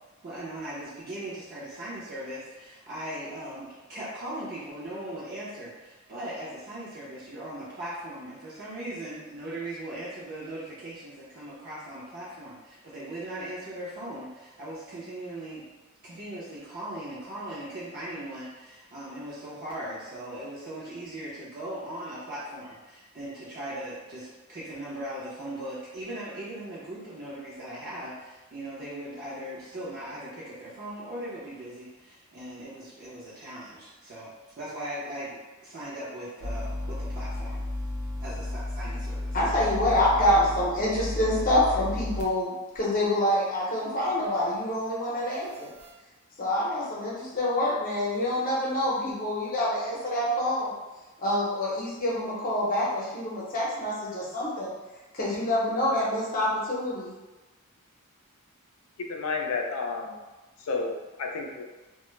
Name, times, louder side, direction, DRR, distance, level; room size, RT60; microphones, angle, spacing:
voice 1, 0.2-15.7 16.0-34.3 34.6-37.7 38.2-39.4, right 1 dB, 45° right, -9 dB, 0.6 m, -39 dB
sound 1, 36.4-42.3 42.7-42.8 45.5-45.9, left 1 dB, 85° right, 0.5 m, -33 dB
voice 2, 39.3-45.7 46.4-50.7 51.2-54.7 55.1-57.1, left 1 dB, 40° left, -5 dB, 0.7 m, -26 dB
voice 3, 59.0-60.2 60.6-61.6, left 4 dB, 70° left, 1 dB, 0.4 m, -31 dB
2.2 x 2.0 x 3.1 m, 1.1 s
head